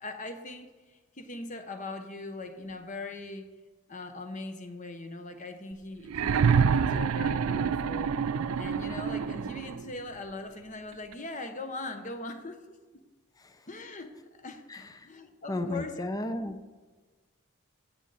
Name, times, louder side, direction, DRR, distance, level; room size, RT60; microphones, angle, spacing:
voice 1, 0.0-3.5 3.9-8.1 8.5-12.6 13.7-14.6 15.0-16.0, left 2 dB, 35° left, 7 dB, 1.0 m, -40 dB
sound 1, 6.1-9.9 11.1-11.2, right 6 dB, 85° right, 0.4 m, -27 dB
voice 2, 14.7-15.1 15.5-16.6, left 1 dB, 15° left, 9 dB, 0.6 m, -34 dB
15.0 x 7.6 x 4.1 m, 1.3 s
head